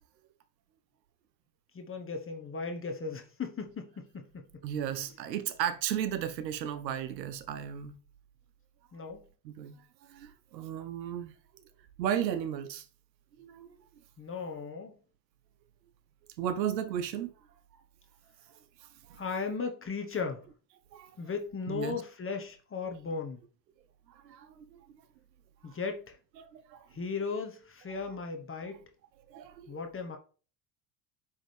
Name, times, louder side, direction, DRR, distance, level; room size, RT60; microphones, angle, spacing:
voice 1, 1.7-4.4 4.9-5.1 8.9-9.2 14.2-15.0 19.1-20.4 21.2-23.4 25.6-26.2 26.9-28.8 29.7-30.2, left 5 dB, 25° left, 1.2 m, -36 dB
voice 2, 4.6-8.0 9.4-9.8 10.1-11.3 12.0-12.9 13.4-13.7 16.4-17.3 19.0-19.2 20.9-21.1 21.7-22.0 24.1-25.0 26.4-26.9 29.3-29.8, right 9 dB, 85° right, 0.8 m, -35 dB
10.0 x 3.7 x 3.4 m
hypercardioid pair, 70°, 49 cm